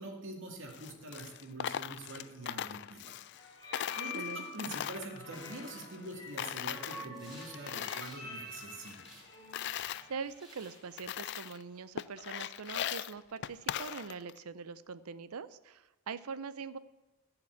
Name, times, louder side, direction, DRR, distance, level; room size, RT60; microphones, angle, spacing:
voice 1, 0.0-3.2 3.6-9.2, right 2 dB, 60° right, 1 dB, 2.2 m, -45 dB
Coin (dropping), 0.6-3.5 3.7-6.1 6.4-8.2 8.5-10.0 10.6-10.7 11.0-11.6 12.0-14.4, left 11 dB, 50° left, 0.3 m, -40 dB
sound 1, 3.4-10.3, left 3 dB, 20° left, 3.1 m, -47 dB
voice 2, 4.0-4.5 9.7-16.8, right 5 dB, 85° right, 15 dB, 0.6 m, -43 dB
sound 2, 7.1-9.3 9.6-12.2, right 1 dB, 5° right, 3.8 m, -58 dB
14.5 x 5.9 x 8.0 m, 1.1 s
head